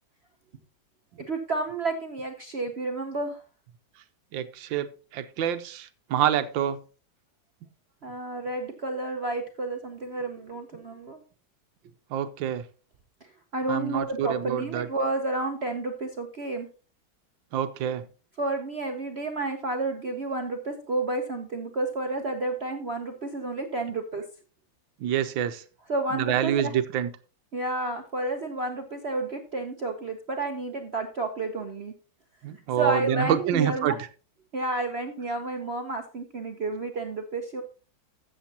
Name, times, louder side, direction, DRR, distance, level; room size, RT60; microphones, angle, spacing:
voice 1, 1.2-3.4 8.0-11.2 13.5-16.7 18.4-24.2 25.9-26.7 27.5-31.9 32.8-34.0 34.5-37.6, right 2 dB, 50° right, 4 dB, 0.8 m, -31 dB
voice 2, 4.3-4.9 5.1-6.8 12.1-12.6 13.7-14.9 17.5-18.1 25.0-25.6 26.1-27.1 32.4-34.1, right 10 dB, 85° right, 11 dB, 1.5 m, -27 dB
13.0 x 7.9 x 2.8 m, 0.35 s
omnidirectional pair, 2.1 m